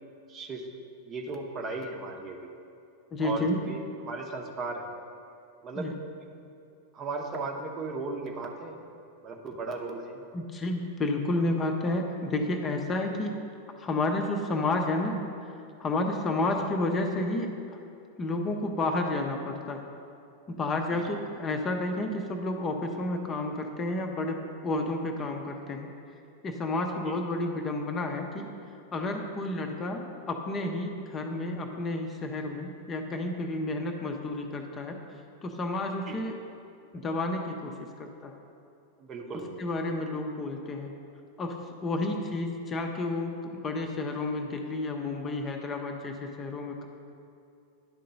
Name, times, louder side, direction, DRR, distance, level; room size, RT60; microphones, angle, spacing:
voice 1, 0.3-0.6 1.0-2.5 3.2-4.8 5.6-5.9 6.9-8.8 9.2-10.2 20.9-21.1 27.1-27.2 36.1-36.2 39.0-39.6, right 3 dB, 25° right, 2 dB, 0.8 m, -36 dB
voice 2, 3.1-3.6 5.7-5.9 10.3-13.4 13.8-15.2 15.8-17.5 18.2-19.8 20.5-25.9 26.4-28.5 28.9-35.0 35.4-36.4 36.9-38.3 39.3-40.9 41.4-46.9, left 2 dB, 25° left, 3 dB, 0.6 m, -31 dB
10.5 x 3.8 x 5.3 m, 2.6 s
figure-of-eight pair, 90°, 0 cm